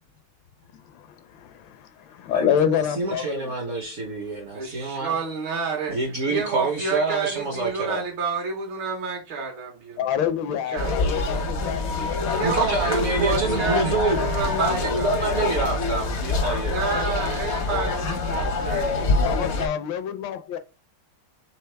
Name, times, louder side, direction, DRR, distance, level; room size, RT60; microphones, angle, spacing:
voice 1, 1.3-3.4 10.0-12.5 19.1-20.6, left 9 dB, 75° left, 1.2 m, -27 dB
voice 2, 2.3-5.2 5.9-8.0 12.4-14.2 14.6-16.8, right 3 dB, 55° right, 0.9 m, -27 dB
voice 3, 4.5-6.0 6.3-10.1 10.5-11.0 12.3-15.1 16.7-19.2, right 5 dB, 75° right, 1.8 m, -29 dB
sound 1, 10.8-19.7, left 3 dB, 60° left, 0.7 m, -25 dB
4.5 x 3.4 x 3.3 m
omnidirectional pair, 2.2 m